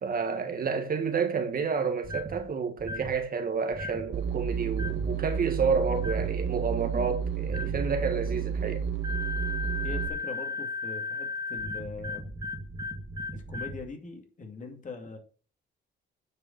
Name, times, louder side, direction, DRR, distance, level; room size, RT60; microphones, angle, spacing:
voice 1, 0.0-8.8, right 5 dB, 45° right, 1.7 m, -30 dB
sound 1, 2.0-2.4 2.8-3.2 3.7-4.1 4.7-5.1 5.9-6.3 7.4-7.8 9.0-13.8, left 3 dB, 20° right, 1.8 m, -36 dB
sound 2, 4.1-10.1, right 8 dB, 70° right, 1.2 m, -31 dB
voice 2, 9.8-12.3 13.3-15.2, left 3 dB, 40° left, 2.4 m, -41 dB
9.3 x 5.0 x 5.5 m
cardioid pair, 90°, 20 cm